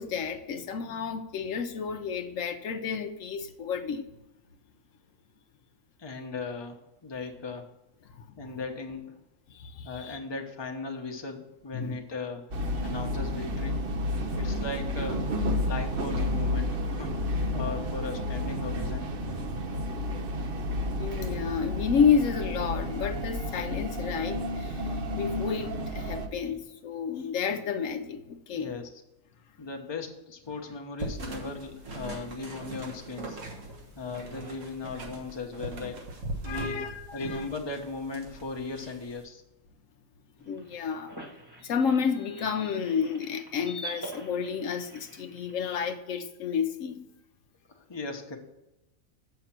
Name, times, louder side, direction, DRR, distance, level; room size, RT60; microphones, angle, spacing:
voice 1, 0.0-4.1 8.1-8.5 9.5-10.2 11.7-11.9 12.8-12.9 21.0-28.7 36.4-37.4 40.5-41.1 41.6-47.0, left 6 dB, 75° left, 7 dB, 1.0 m, -30 dB
voice 2, 6.0-7.7 8.4-9.2 9.8-12.4 12.8-13.8 14.3-15.3 15.6-19.1 28.5-28.9 29.6-33.4 33.9-36.0 36.4-36.8 37.1-39.4 47.7-48.4, left 3 dB, 20° left, 3 dB, 0.9 m, -37 dB
sound 1, 12.5-26.3, left 1 dB, 50° right, 0.9 m, -31 dB
sound 2, 31.0-39.2, right 2 dB, 65° right, 1.8 m, -40 dB
sound 3, 40.4-45.9, right 1 dB, 20° right, 1.4 m, -45 dB
7.6 x 5.8 x 5.9 m, 0.94 s
omnidirectional pair, 1.4 m